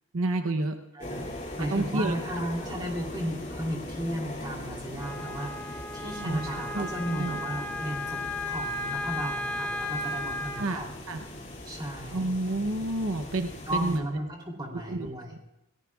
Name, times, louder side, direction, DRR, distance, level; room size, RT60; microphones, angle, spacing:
voice 1, 0.1-0.8 1.7-2.5 6.2-7.4 10.6-11.2 12.1-14.0 14.7-15.1, right 2 dB, 70° right, 6 dB, 0.9 m, -30 dB
voice 2, 0.9-10.9 11.6-12.2 13.7-15.4, equal, 20° right, -1 dB, 3.3 m, -35 dB
sound 1, 1.0-14.0, left 1 dB, 30° left, 2.6 m, -40 dB
Wind instrument woodwind instrument, 5.0-10.7, left 2 dB, 10° left, 0.9 m, -35 dB
28.5 x 18.5 x 2.4 m, 0.91 s
head